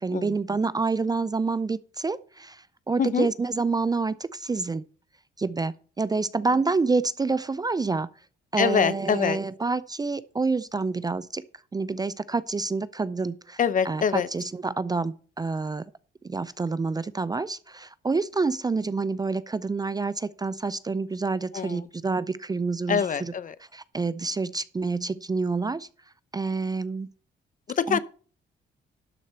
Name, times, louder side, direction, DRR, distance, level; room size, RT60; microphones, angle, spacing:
voice 1, 0.0-2.6 2.9-4.8 5.4-8.1 8.5-11.4 11.7-13.6 13.9-15.8 16.2-23.0 23.7-25.9 26.3-27.1 27.9-28.0, right 4 dB, 20° right, 0.4 m, -28 dB
voice 2, 3.0-3.3 6.5-6.6 8.6-9.4 13.6-14.3 21.5-21.9 22.9-23.6 27.8-28.0, left 7 dB, 40° left, 0.7 m, -25 dB
12.0 x 4.2 x 6.7 m
cardioid pair, 90°, 20 cm